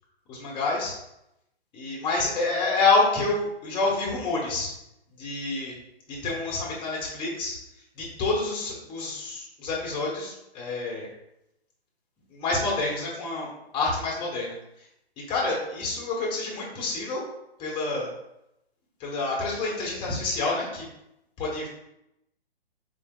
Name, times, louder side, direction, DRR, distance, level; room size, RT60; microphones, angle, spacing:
voice 1, 0.3-1.0 1.7-4.7 5.2-5.7 6.1-7.6 8.0-11.1 12.3-14.6 15.2-17.2 17.6-18.1 19.0-20.9 21.4-21.7, left 3 dB, 15° left, -3 dB, 0.9 m, -28 dB
4.1 x 3.4 x 2.2 m, 0.85 s
figure-of-eight pair, 125°, 32 cm